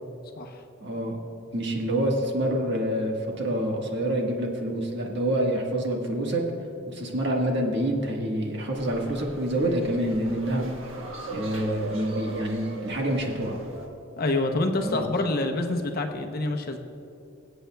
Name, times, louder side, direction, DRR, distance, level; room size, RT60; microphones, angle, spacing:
voice 1, 0.8-1.2 1.5-6.4 6.9-10.7 11.3-13.6 14.8-15.0, right 1 dB, 60° right, 0 dB, 1.4 m, -27 dB
sound 1, 8.7-13.9, right 2 dB, 90° right, 1.4 m, -39 dB
voice 2, 14.2-16.8, left 2 dB, 50° left, 4 dB, 0.8 m, -27 dB
23.5 x 8.0 x 2.3 m, 2.7 s
head